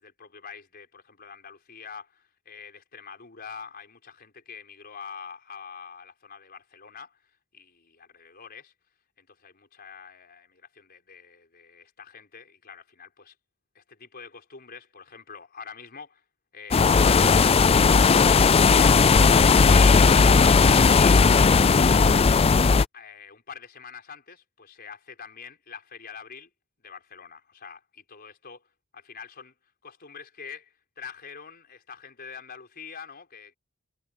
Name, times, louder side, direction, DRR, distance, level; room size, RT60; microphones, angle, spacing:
voice 1, 0.0-7.2 7.5-8.7 9.2-13.3 13.7-16.2 22.9-26.5 26.8-28.6 28.9-29.5 29.8-33.6, left 6 dB, 45° left, 4.7 m, -44 dB
sound 1, 16.7-22.9, left 5 dB, 25° left, 0.4 m, -17 dB
head